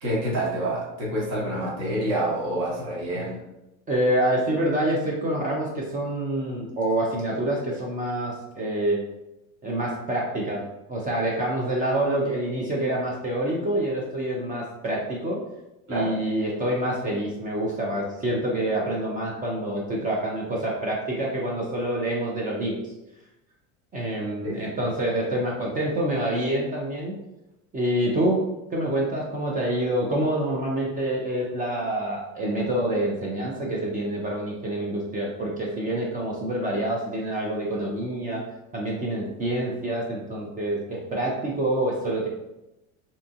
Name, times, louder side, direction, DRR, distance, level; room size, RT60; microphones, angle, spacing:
voice 1, 0.0-3.4 15.9-16.1 24.4-24.6, right 1 dB, 45° right, -6 dB, 1.3 m, -27 dB
voice 2, 3.9-9.0 9.6-10.6 10.9-15.4 15.9-22.9 23.9-27.1 27.7-28.4 28.7-38.4 38.7-42.3, right 1 dB, 20° right, -3 dB, 0.5 m, -27 dB
2.7 x 2.4 x 2.3 m, 0.93 s
hypercardioid pair, 95°, 40 cm